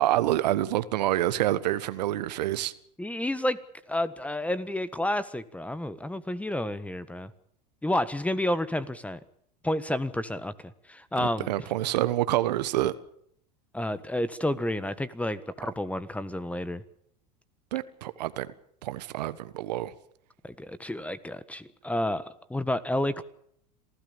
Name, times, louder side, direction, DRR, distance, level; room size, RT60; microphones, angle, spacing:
voice 1, 0.0-2.7 11.2-12.9 17.7-18.5 18.8-19.9, right 14 dB, 75° right, 1.4 m, -27 dB
voice 2, 3.0-3.6 3.9-7.3 7.8-9.2 9.6-11.5 13.7-16.8 20.4-22.2 22.5-23.2, left 1 dB, 5° left, 1.5 m, -30 dB
27.5 x 16.0 x 7.2 m
hypercardioid pair, 90°, 21 cm